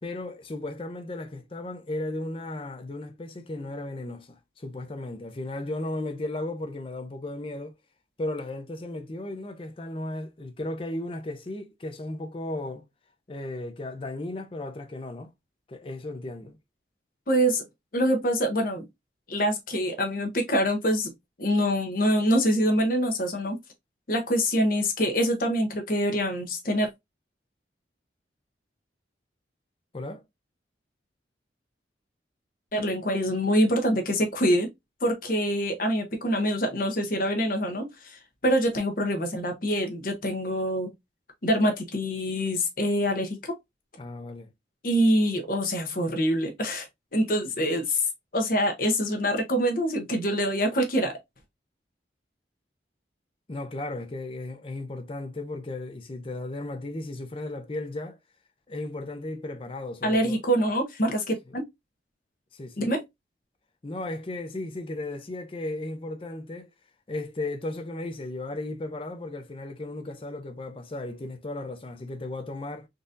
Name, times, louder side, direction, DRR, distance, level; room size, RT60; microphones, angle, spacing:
voice 1, 0.0-7.7 8.2-12.8 13.3-15.3 15.7-16.6 29.9-30.2 44.0-44.5 53.5-58.2 58.7-60.4 62.5-62.9 63.8-66.7 67.1-72.9, left 2 dB, 30° left, 0.5 m, -35 dB
voice 2, 17.3-17.6 17.9-18.9 19.3-21.1 21.4-23.6 24.1-26.9 32.7-34.7 35.0-40.9 41.4-43.5 44.8-48.1 48.3-51.1 60.0-61.6 62.8-63.0, equal, 50° left, 0.8 m, -25 dB
3.8 x 2.5 x 2.5 m
head